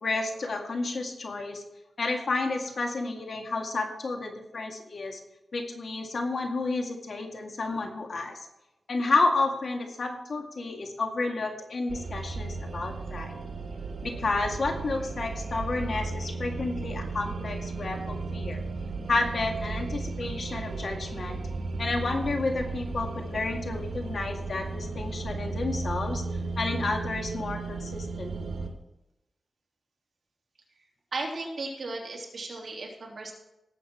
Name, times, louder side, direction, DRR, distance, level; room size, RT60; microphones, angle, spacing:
voice 1, 0.0-1.6 2.0-5.2 5.5-8.4 8.9-13.3 14.0-18.6 19.1-21.4 21.8-26.2 26.6-28.5, left 3 dB, 60° left, 3 dB, 2.0 m, -31 dB
sound 1, 11.9-28.7, right 3 dB, 80° right, 2.4 m, -35 dB
voice 2, 31.1-33.3, right 3 dB, 55° right, -1 dB, 3.3 m, -35 dB
18.0 x 8.0 x 4.5 m, 0.92 s
wide cardioid pair, 120°, 0 cm